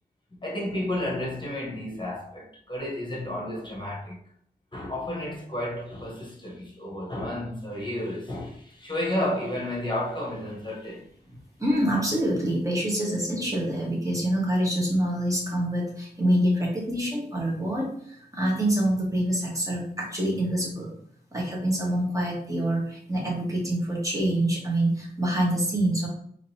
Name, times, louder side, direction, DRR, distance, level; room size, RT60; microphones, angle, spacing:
voice 1, 0.4-4.2 4.7-11.1, left 1 dB, 30° left, 1.2 m, -32 dB
voice 2, 11.3-20.9 21.3-26.1, right 1 dB, 20° right, 1.4 m, -26 dB
3.7 x 3.0 x 2.8 m
wide cardioid pair, 65°, 17 cm